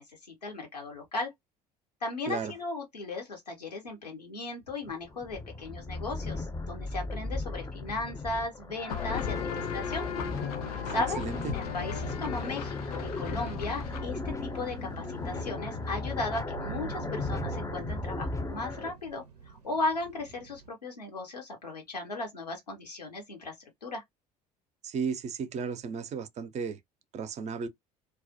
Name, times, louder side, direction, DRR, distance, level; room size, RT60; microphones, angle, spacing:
voice 1, 0.0-1.3 2.0-10.1 10.9-11.2 11.5-23.5 23.8-24.0, left 2 dB, 90° left, 0.8 m, -36 dB
sound 1, 4.7-18.9, left 2 dB, 15° left, 0.5 m, -37 dB
sound 2, 8.9-16.3, left 8 dB, 70° left, 0.4 m, -38 dB
sound 3, 10.2-20.7, right 6 dB, 90° right, 0.5 m, -46 dB
voice 2, 10.8-11.4 24.8-26.8 27.1-27.7, right 6 dB, 35° right, 0.5 m, -34 dB
2.3 x 2.0 x 2.6 m
figure-of-eight pair, 60°, 20 cm